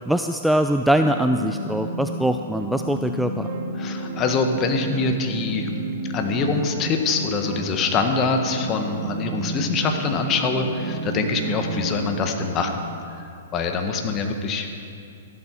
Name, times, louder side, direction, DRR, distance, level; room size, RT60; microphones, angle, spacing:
voice 1, 0.1-3.5, right 1 dB, ahead, 6 dB, 0.4 m, -22 dB
sound 1, 1.0-12.7, right 3 dB, 45° right, 1.4 m, -32 dB
voice 2, 3.7-5.7 6.1-12.8 13.2-14.9, left 4 dB, 30° left, 5 dB, 1.5 m, -24 dB
14.0 x 12.0 x 4.8 m, 2.5 s
hypercardioid pair, 120°, 0 cm